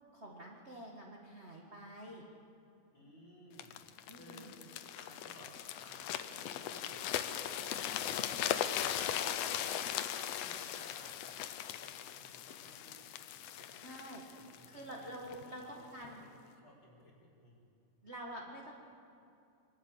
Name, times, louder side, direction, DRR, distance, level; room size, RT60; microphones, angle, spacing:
voice 1, 0.1-2.3 4.1-4.7 13.8-14.2 14.7-16.2 18.0-18.7, right 1 dB, 30° right, -2 dB, 1.4 m, -48 dB
voice 2, 2.9-4.6 4.9-5.5 5.8-11.3 11.8-13.0 13.5-13.7 14.3-15.1 15.4-15.8 16.0-17.6, equal, 40° left, -6 dB, 5.0 m, -58 dB
sound 1, 3.6-15.4 16.0-16.2, left 10 dB, 75° left, 1.6 m, -39 dB
25.0 x 12.0 x 8.8 m, 2.6 s
omnidirectional pair, 3.5 m